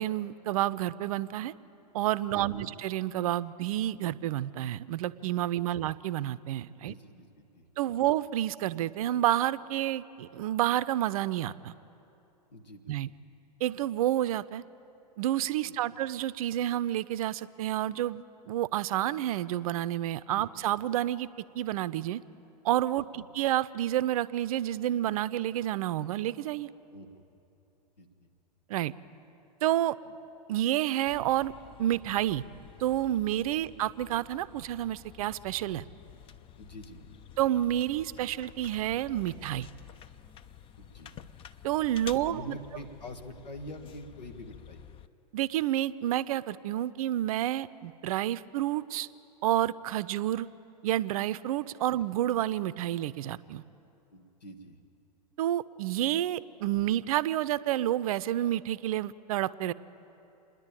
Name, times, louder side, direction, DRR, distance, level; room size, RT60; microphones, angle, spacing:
voice 1, 0.0-1.5 1.9-6.9 7.8-11.7 12.9-13.1 13.6-14.6 15.2-21.3 21.5-22.2 22.6-26.7 28.7-28.9 29.6-30.0 30.5-31.5 31.8-32.4 32.8-35.8 37.4-39.7 41.6-42.6 45.3-49.1 49.4-50.5 50.8-53.6 55.4-59.7, right 13 dB, 55° right, 17 dB, 0.6 m, -29 dB
voice 2, 2.3-2.7 6.8-7.7 8.0-8.1 12.5-13.1 15.6-16.0 20.3-20.5 23.1-23.3 26.9-27.1 28.0-28.3 30.1-30.2 33.6-33.7 36.6-37.2 40.8-41.1 42.2-44.8 51.9-52.0 54.1-54.8, left 1 dB, 80° left, 7 dB, 1.7 m, -46 dB
sound 1, 31.1-45.1, left 9 dB, 25° left, 0.6 m, -50 dB
27.5 x 10.5 x 9.0 m, 2.8 s
hypercardioid pair, 105°, 21 cm